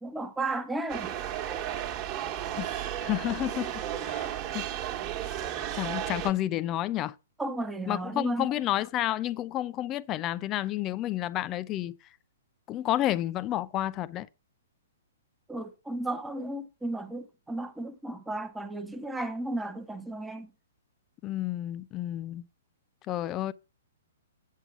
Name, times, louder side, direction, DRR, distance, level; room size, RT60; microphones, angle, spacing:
voice 1, 0.0-1.1 7.4-8.5 15.5-20.5, right 2 dB, 5° right, 1.1 m, -34 dB
sound 1, 0.9-6.3, right 11 dB, 30° right, 1.5 m, -34 dB
voice 2, 2.6-4.3 4.5-4.6 5.7-7.1 7.9-11.9 12.7-14.3 21.2-22.4 23.1-23.5, left 13 dB, 25° left, 0.5 m, -30 dB
7.9 x 7.5 x 4.8 m
figure-of-eight pair, 115°, 0 cm